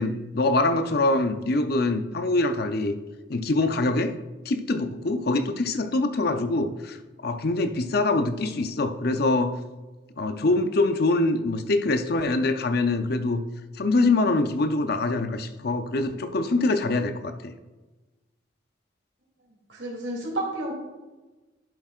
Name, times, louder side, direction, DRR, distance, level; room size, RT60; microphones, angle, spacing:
voice 1, 0.0-2.9 3.3-4.1 4.5-7.0 7.2-9.5 10.2-13.4 13.8-17.5, left 2 dB, 55° left, 8 dB, 0.6 m, -24 dB
voice 2, 19.7-20.7, right 1 dB, 70° right, -1 dB, 2.8 m, -30 dB
11.5 x 7.4 x 2.5 m, 1.2 s
head